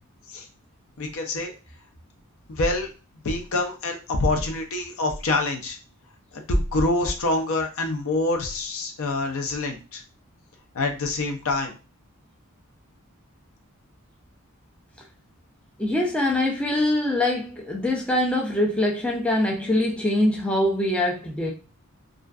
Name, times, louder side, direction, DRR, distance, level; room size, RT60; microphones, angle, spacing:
voice 1, 1.0-1.5 2.6-2.9 3.2-5.8 6.3-10.0 10.7-11.7, left 2 dB, 65° left, 3 dB, 0.5 m, -26 dB
voice 2, 15.8-21.5, left 1 dB, 5° left, 0 dB, 0.3 m, -23 dB
2.4 x 2.3 x 2.3 m, 0.33 s
head